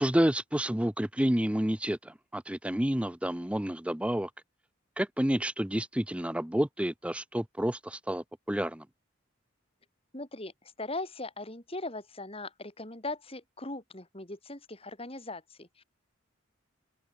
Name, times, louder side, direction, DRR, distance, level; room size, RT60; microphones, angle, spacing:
voice 1, 0.0-4.3 5.0-8.8, equal, 5° right, 0.7 m, -29 dB
voice 2, 10.1-10.5 10.8-15.8, left 2 dB, 30° left, 6.2 m, -39 dB
open air
head